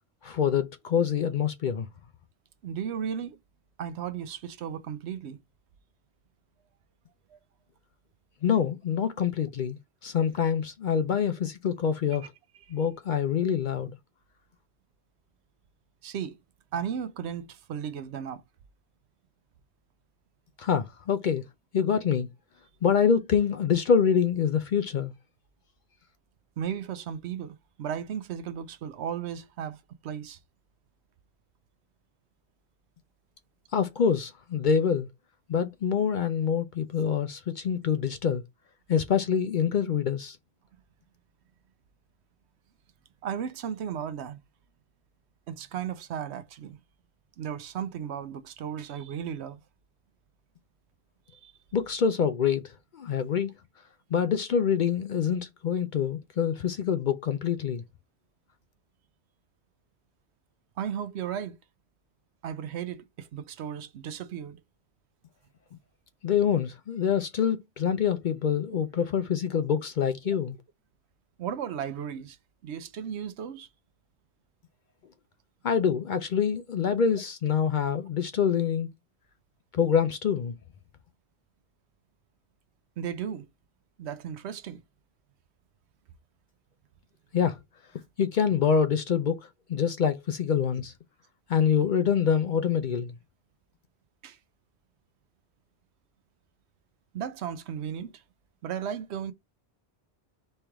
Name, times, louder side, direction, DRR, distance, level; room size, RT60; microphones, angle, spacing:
voice 1, 0.2-1.9 8.4-12.3 12.7-14.0 20.6-21.4 21.7-22.3 22.8-25.1 33.7-35.1 35.5-38.4 38.9-40.4 51.7-53.5 54.1-57.8 66.2-70.6 75.6-78.9 79.7-80.5 87.3-87.6 88.2-90.9 91.5-93.2, left 7 dB, 60° left, 0.5 m, -26 dB
voice 2, 2.6-3.4 3.8-5.4 7.3-7.4 13.1-13.2 16.0-16.4 16.7-18.4 26.6-30.4 43.2-44.4 45.5-46.8 47.4-49.6 51.3-51.5 60.8-61.6 62.4-64.6 70.3-70.4 71.4-72.4 72.6-73.7 83.0-83.5 84.0-84.8 94.2-94.4 97.1-98.2 98.6-99.3, right 8 dB, 75° right, 0.9 m, -35 dB
4.4 x 3.3 x 3.4 m
omnidirectional pair, 1.1 m